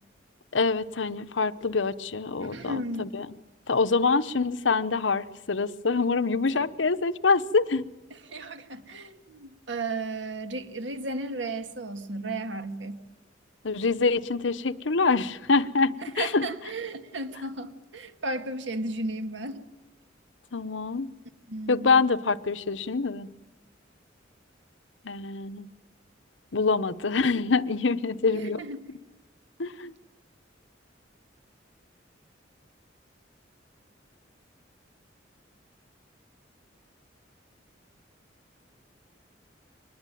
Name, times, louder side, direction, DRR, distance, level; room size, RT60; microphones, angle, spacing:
voice 1, 0.5-3.3 3.7-7.8 13.6-16.5 20.5-21.1 21.7-23.3 25.0-25.7 26.5-28.6 29.6-29.9, left 4 dB, 80° left, 13 dB, 0.9 m, -25 dB
voice 2, 2.4-3.2 8.1-13.0 16.0-19.6 21.5-22.0 28.3-29.0, right 2 dB, 75° right, 8 dB, 2.0 m, -34 dB
24.0 x 20.5 x 9.2 m, 1.1 s
head